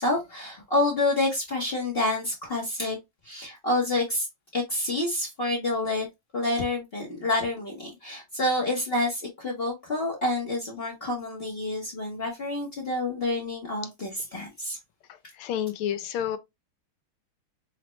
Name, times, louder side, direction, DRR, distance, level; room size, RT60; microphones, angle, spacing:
voice 1, 0.0-3.0 3.2-4.3 4.5-6.1 6.3-14.8, left 2 dB, 55° left, 0.6 m, -28 dB
voice 2, 15.4-16.4, left 10 dB, 80° left, 1.5 m, -29 dB
5.6 x 2.0 x 3.0 m
omnidirectional pair, 2.4 m